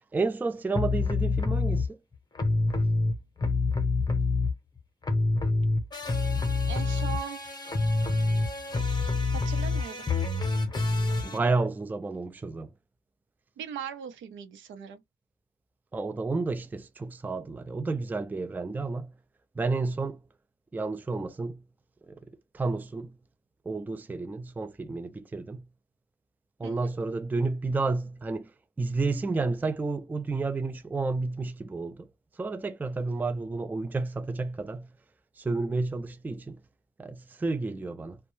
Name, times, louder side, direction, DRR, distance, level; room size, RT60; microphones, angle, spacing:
voice 1, 0.1-2.0 11.2-12.7 15.9-19.1 19.6-20.2 20.7-21.6 22.1-22.2 22.5-23.1 23.7-25.6 26.6-28.5 28.8-32.1 32.4-34.9 35.4-36.6 37.0-38.2, right 3 dB, 10° right, 0.3 m, -31 dB
sound 1, 0.7-1.9 2.4-4.8 5.0-11.4, left 3 dB, 20° left, 0.8 m, -27 dB
voice 2, 6.7-7.6 9.3-10.1 13.6-15.0 26.6-26.9, right 8 dB, 75° right, 0.7 m, -39 dB
2.2 x 2.2 x 3.0 m
cardioid pair, 90°, 20 cm